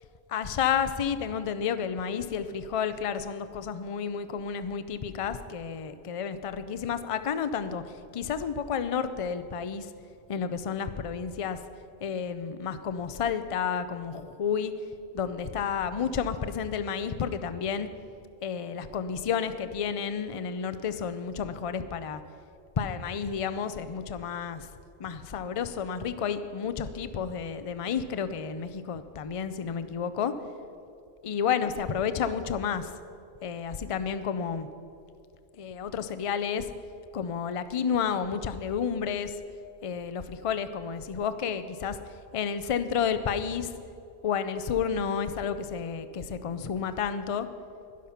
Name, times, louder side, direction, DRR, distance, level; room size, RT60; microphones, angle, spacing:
voice 1, 0.3-9.9 10.3-11.6 12.0-14.7 15.1-17.9 18.4-22.2 22.8-24.7 25.0-30.3 31.2-32.9 33.4-34.7 35.6-36.7 37.1-39.3 39.8-42.0 42.3-43.7 44.2-47.5, left 7 dB, 40° left, 11 dB, 0.5 m, -31 dB
12.5 x 11.0 x 5.8 m, 2.5 s
omnidirectional pair, 1.2 m